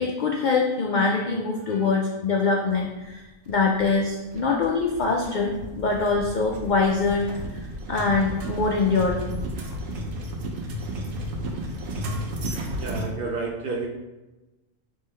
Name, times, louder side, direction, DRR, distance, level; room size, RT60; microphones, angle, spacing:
voice 1, 0.0-7.3 7.5-7.6 7.9-9.4, left 4 dB, 80° left, 0 dB, 0.4 m, -24 dB
sound 1, 3.5-13.1, right 1 dB, 80° right, 1.1 m, -33 dB
voice 2, 12.5-13.9, right 3 dB, 60° right, 1 dB, 0.6 m, -32 dB
3.7 x 3.2 x 4.2 m, 1.1 s
omnidirectional pair, 1.4 m